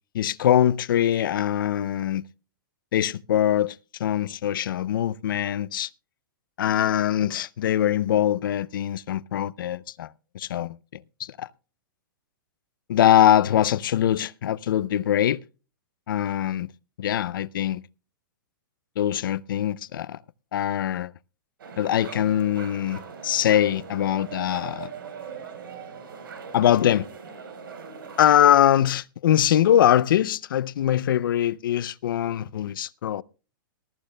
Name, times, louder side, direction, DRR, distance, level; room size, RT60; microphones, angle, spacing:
voice 1, 0.1-2.3 2.9-5.9 6.6-10.8 11.2-11.5 12.9-15.4 16.1-16.7 17.0-17.8 19.0-20.2 20.5-21.1 21.8-24.9 26.5-27.1 28.2-33.2, left 11 dB, 75° left, 0.5 m, -22 dB
sound 1, 21.6-28.4, right 6 dB, 80° right, 4.2 m, -40 dB
21.0 x 13.5 x 2.2 m
hypercardioid pair, 160°, 11 cm